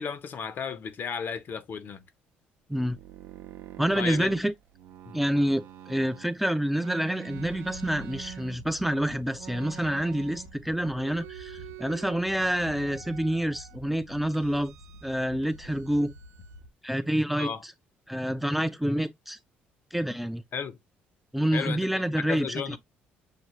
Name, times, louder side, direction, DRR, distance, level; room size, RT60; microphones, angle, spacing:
voice 1, 0.0-2.0 3.9-4.3 5.0-5.2 17.4-17.6 20.5-20.8 21.5-21.9 22.3-22.8, left 6 dB, 50° left, 0.7 m, -34 dB
sound 1, 2.7-6.3 6.8-8.9 9.4-10.6 10.9-12.2 12.6-13.8 14.3-15.2 15.4-16.6, right 10 dB, 70° right, 0.6 m, -46 dB
voice 2, 3.8-4.5 5.1-14.7 15.0-16.1 16.8-17.7 18.1-19.4 19.9-20.4 21.3-22.8, right 1 dB, 5° right, 0.4 m, -28 dB
sound 2, 7.3-16.7, left 1 dB, 85° left, 2.5 m, -48 dB
6.6 x 2.3 x 3.0 m
supercardioid pair, 85°, 4 cm